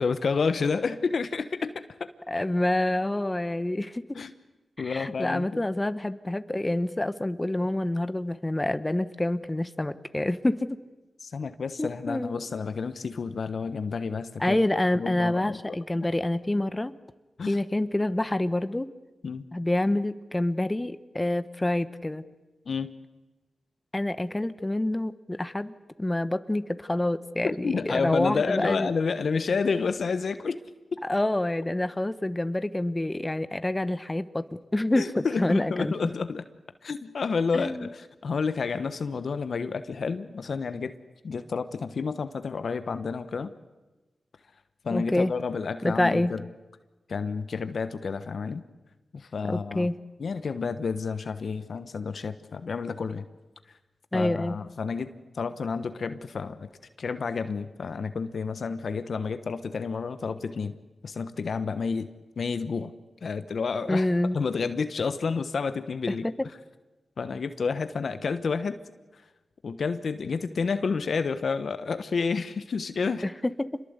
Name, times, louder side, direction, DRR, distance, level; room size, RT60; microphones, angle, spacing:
voice 1, 0.0-1.7 2.0-2.1 4.1-4.3 4.8-5.6 11.2-14.6 14.9-15.7 17.4-17.6 19.2-19.4 22.7-22.9 27.4-30.6 35.0-36.4 36.8-40.9 41.2-43.5 44.8-46.4 47.1-48.6 49.1-49.9 50.2-53.2 54.1-56.7 57.0-60.7 61.0-62.1 62.4-62.9 63.2-64.1 64.3-66.3 67.2-68.8 69.6-73.2, left 5 dB, 70° left, 11 dB, 1.2 m, -30 dB
voice 2, 2.3-4.2 4.8-10.8 11.8-12.3 14.4-16.9 17.5-18.9 19.5-22.2 23.9-28.9 31.0-35.9 37.5-37.9 44.9-45.3 45.8-46.3 49.5-50.0 54.1-54.6 63.9-64.4 73.2-73.8, left 1 dB, 20° left, 12 dB, 1.3 m, -27 dB
27.0 x 22.0 x 8.2 m, 1.1 s
cardioid pair, 45°, 0 cm